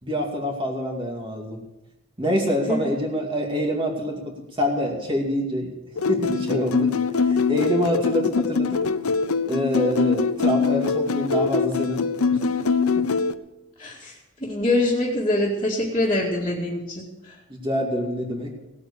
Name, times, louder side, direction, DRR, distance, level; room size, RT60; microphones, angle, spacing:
voice 1, 0.0-1.6 2.2-5.7 6.1-6.9 7.2-8.8 9.5-12.1 13.0-13.1 17.5-18.6, equal, 25° right, 0 dB, 2.4 m, -26 dB
sound 1, 6.0-13.3, left 4 dB, 90° left, 0.7 m, -23 dB
voice 2, 13.8-14.1 14.4-17.3, left 1 dB, 25° left, -7 dB, 2.2 m, -24 dB
17.5 x 8.6 x 6.9 m, 0.96 s
head